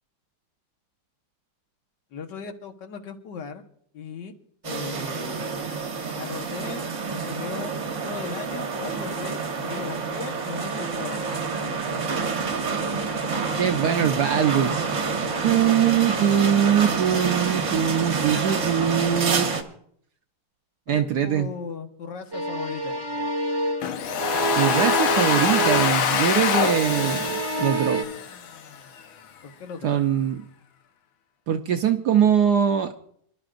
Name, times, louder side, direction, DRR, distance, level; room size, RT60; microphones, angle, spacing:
voice 1, 2.1-3.6 3.9-4.3 4.6-7.7 8.0-12.3 20.9-23.3 29.4-30.0, left 6 dB, 55° left, 5 dB, 1.8 m, -38 dB
sound 1, 4.6-19.6, right 4 dB, 40° right, 1.2 m, -28 dB
voice 2, 13.6-14.9 15.4-19.4 20.9-21.5 24.6-28.0 29.8-30.4 31.5-32.9, right 9 dB, 65° right, 7 dB, 1.0 m, -22 dB
sound 2, 22.3-26.1 26.4-28.0, right 2 dB, 15° right, 0.9 m, -27 dB
Domestic sounds home sounds, 23.8-28.8, left 7 dB, 70° left, 1.8 m, -25 dB
26.5 x 12.5 x 2.5 m, 0.65 s
omnidirectional pair, 2.4 m